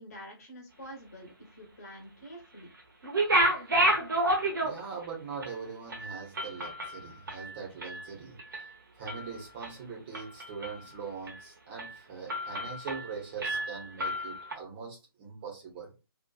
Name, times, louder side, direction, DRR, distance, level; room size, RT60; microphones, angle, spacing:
voice 1, 0.0-2.7, equal, 40° left, 1 dB, 1.1 m, -47 dB
sound 1, 3.0-5.0 5.4-5.5 5.9-8.1 8.4-8.7 9.1-9.7 10.1-10.9 11.3-11.4 11.8-12.0 12.3-13.1 13.4-14.5, right 1 dB, 55° right, 0.8 m, -30 dB
voice 2, 4.6-8.4 9.0-15.9, right 5 dB, 25° right, -2 dB, 0.7 m, -42 dB
2.7 x 2.2 x 2.2 m, 0.29 s
figure-of-eight pair, 145°, 13 cm